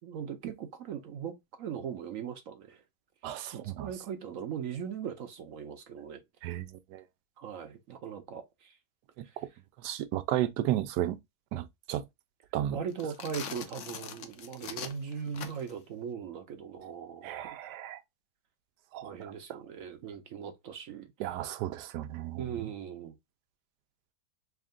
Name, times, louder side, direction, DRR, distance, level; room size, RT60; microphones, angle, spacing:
voice 1, 0.0-2.8 3.5-6.2 7.4-8.8 9.2-9.5 12.7-17.3 19.0-21.1 22.4-23.1, right 7 dB, 65° right, 0.9 m, -39 dB
voice 2, 3.2-3.9 6.4-7.0 9.8-11.2 11.5-12.0 12.5-12.8 17.2-18.0 18.9-19.3 21.2-22.7, right 13 dB, 85° right, 1.2 m, -33 dB
sound 1, 12.9-15.8, left 8 dB, 65° left, 0.8 m, -42 dB
3.6 x 2.5 x 3.6 m
omnidirectional pair, 1.7 m